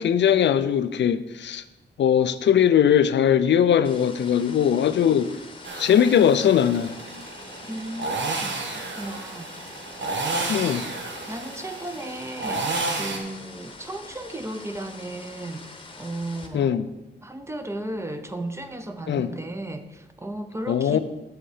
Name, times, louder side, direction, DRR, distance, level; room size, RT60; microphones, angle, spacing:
voice 1, 0.0-1.6 2.0-5.3 5.7-6.9 10.5-10.8 16.5-16.9 19.1-19.3 20.7-21.0, left 9 dB, 75° left, 0.5 m, -20 dB
sound 1, 3.8-16.5, left 3 dB, 25° left, 0.9 m, -44 dB
sound 2, 5.6-13.2, right 3 dB, 90° right, 1.2 m, -31 dB
voice 2, 7.6-9.5 11.3-12.7 13.0-15.7 16.0-16.7 17.2-21.0, right 1 dB, 15° right, 0.6 m, -35 dB
7.8 x 6.7 x 4.9 m
wide cardioid pair, 145°, 19 cm